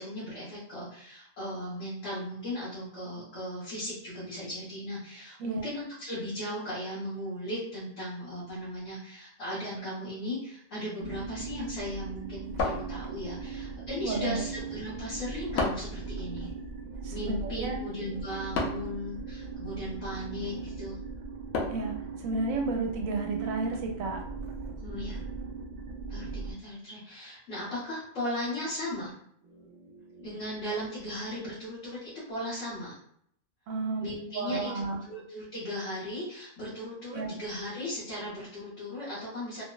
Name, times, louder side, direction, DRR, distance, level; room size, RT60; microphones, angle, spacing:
voice 1, 0.0-16.5 17.1-21.0 24.8-25.2 26.1-29.1 30.2-33.0 34.0-39.6, left 1 dB, 65° left, -9 dB, 1.3 m, -37 dB
sound 1, 11.0-26.5, right 4 dB, 70° right, 0.4 m, -39 dB
sound 2, 12.6-13.5 15.6-16.0 18.5-19.0 21.5-22.0, left 3 dB, 90° left, 1.0 m, -31 dB
voice 2, 14.0-14.4 17.0-17.8 21.7-24.2 29.5-30.3 33.7-34.0 34.3-35.0 37.1-37.3, right 3 dB, 85° right, 3 dB, 1.0 m, -33 dB
3.1 x 2.0 x 2.2 m, 0.68 s
omnidirectional pair, 1.4 m